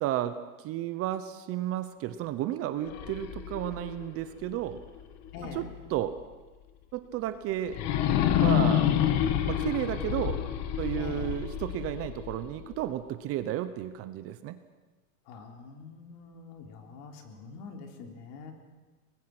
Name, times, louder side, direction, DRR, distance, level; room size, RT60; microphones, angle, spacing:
voice 1, 0.0-4.8 5.4-5.6 5.9-6.2 6.9-7.8 8.4-8.9 9.5-10.4 10.8-14.6, right 12 dB, 30° right, 11 dB, 0.9 m, -32 dB
sound 1, 2.8-5.8 6.2-6.3 7.7-12.8, left 10 dB, 35° left, 1.6 m, -29 dB
voice 2, 5.3-5.7 10.9-11.3 15.3-18.5, left 5 dB, 50° left, 4 dB, 3.6 m, -44 dB
24.0 x 20.5 x 6.1 m, 1.2 s
supercardioid pair, 145°, 44 cm